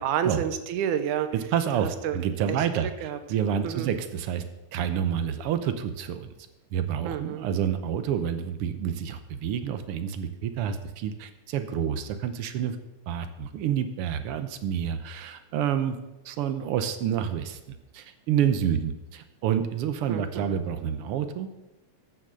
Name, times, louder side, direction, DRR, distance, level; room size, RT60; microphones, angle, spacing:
voice 1, 0.0-1.3 1.7-2.2 2.5-3.2 3.6-3.9 7.0-7.5 20.0-20.6, right 9 dB, 85° right, 10 dB, 2.3 m, -30 dB
voice 2, 1.3-4.4 4.7-6.3 6.7-12.8 13.1-16.0 16.2-21.5, right 9 dB, 70° right, 9 dB, 1.4 m, -28 dB
13.5 x 7.0 x 6.3 m, 0.99 s
omnidirectional pair, 3.4 m